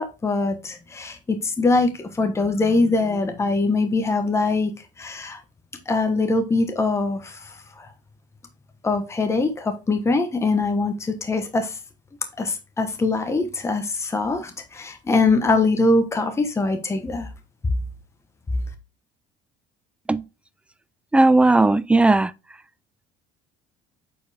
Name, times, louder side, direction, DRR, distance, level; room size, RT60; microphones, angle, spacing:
voice 1, 0.0-4.7 5.0-5.4 5.9-7.9 8.8-11.7 12.4-17.3, left 3 dB, 20° left, 1.1 m, -23 dB
voice 2, 21.1-22.3, right 2 dB, 10° right, 0.4 m, -16 dB
7.8 x 4.6 x 3.4 m
supercardioid pair, 105°, 15 cm